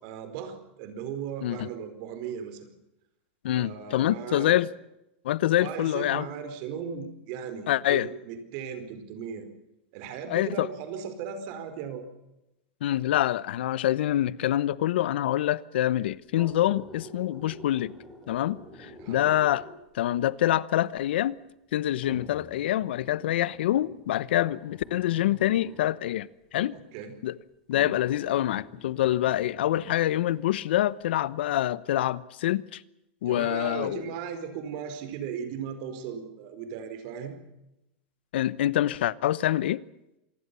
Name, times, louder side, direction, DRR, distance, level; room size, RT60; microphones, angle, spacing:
voice 1, 0.0-2.7 3.5-4.5 5.6-9.5 9.9-12.0 19.0-19.3 26.7-27.2 33.2-37.4, right 7 dB, 45° right, 4.7 m, -37 dB
voice 2, 3.4-4.7 5.2-6.3 7.7-8.1 10.3-10.7 12.8-17.9 18.3-19.6 19.9-21.4 21.7-26.8 27.2-27.3 27.7-32.8 33.2-34.0 38.3-39.8, left 13 dB, 80° left, 1.0 m, -26 dB
sound 1, 16.3-19.9 20.9-21.0 22.0-25.9 27.0-27.1 27.7-30.4 30.8-30.9, left 1 dB, ahead, 7.7 m, -47 dB
27.0 x 20.0 x 7.0 m
supercardioid pair, 165°, 6 cm